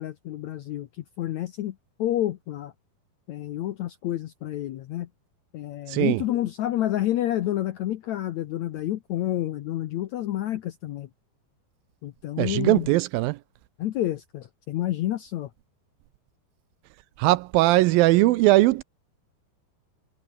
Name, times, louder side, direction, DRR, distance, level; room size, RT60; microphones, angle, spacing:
voice 1, 0.0-2.7 3.3-5.1 5.5-11.1 12.0-12.9 13.8-15.5, left 13 dB, 80° left, 1.6 m, -29 dB
voice 2, 5.9-6.2 12.4-13.4 17.2-18.8, right 18 dB, 80° right, 2.2 m, -20 dB
omnidirectional pair, 4.5 m